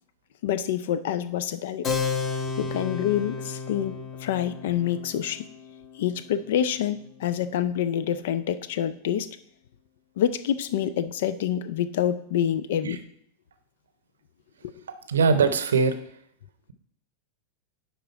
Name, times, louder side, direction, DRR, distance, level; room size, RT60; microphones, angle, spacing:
voice 1, 0.4-1.9 2.6-5.5 5.9-9.4 10.2-13.0 14.6-14.8, left 10 dB, 55° left, 13 dB, 0.5 m, -27 dB
Keyboard (musical), 1.8-8.0, left 5 dB, 30° left, 1.1 m, -34 dB
voice 2, 15.1-15.9, right 5 dB, 65° right, 9 dB, 0.7 m, -20 dB
10.0 x 3.8 x 4.6 m, 0.68 s
figure-of-eight pair, 90°, 0 cm